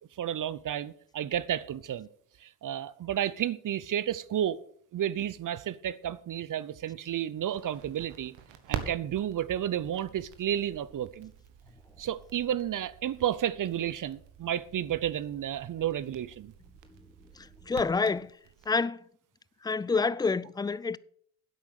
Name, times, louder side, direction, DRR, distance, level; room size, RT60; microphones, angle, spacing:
voice 1, 0.2-2.1 2.4-4.6 4.9-8.3 8.7-11.3 12.0-16.5, right 10 dB, 45° right, 0.7 m, -32 dB
Crackle, 7.5-18.7, right 9 dB, 70° right, 1.5 m, -45 dB
voice 2, 17.4-18.3 18.7-19.0 19.6-21.0, left 4 dB, 10° left, 0.4 m, -28 dB
10.5 x 8.3 x 6.3 m
hypercardioid pair, 45°, 45 cm